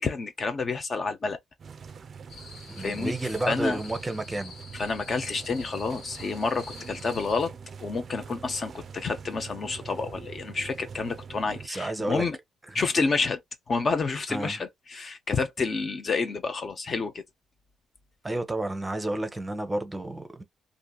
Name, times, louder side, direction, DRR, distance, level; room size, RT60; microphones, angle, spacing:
voice 1, 0.0-1.4 2.8-3.1 3.5-3.8 4.7-7.5 7.8-12.4 12.7-13.4 13.7-17.1, left 4 dB, 40° left, 0.6 m, -29 dB
sound 1, 1.6-11.7, right 6 dB, 50° right, 0.3 m, -43 dB
sound 2, 2.3-7.5, left 4 dB, 75° left, 1.0 m, -48 dB
voice 2, 2.7-4.5 11.5-12.2 12.7-12.8 14.3-14.6 18.2-20.4, right 2 dB, 15° right, 0.6 m, -31 dB
2.7 x 2.5 x 2.3 m
cardioid pair, 90°, 0 cm